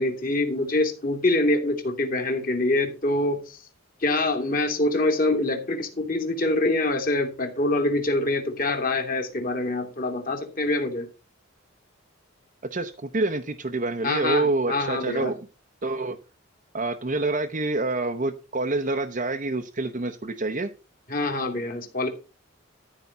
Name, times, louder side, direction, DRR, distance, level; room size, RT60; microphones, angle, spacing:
voice 1, 0.0-3.6 4.0-11.1 14.0-15.3 21.1-22.1, left 2 dB, 40° left, 2.5 m, -25 dB
voice 2, 12.7-15.4 15.8-16.2 16.7-20.7, right 2 dB, 40° right, 0.7 m, -27 dB
13.5 x 4.9 x 5.6 m
head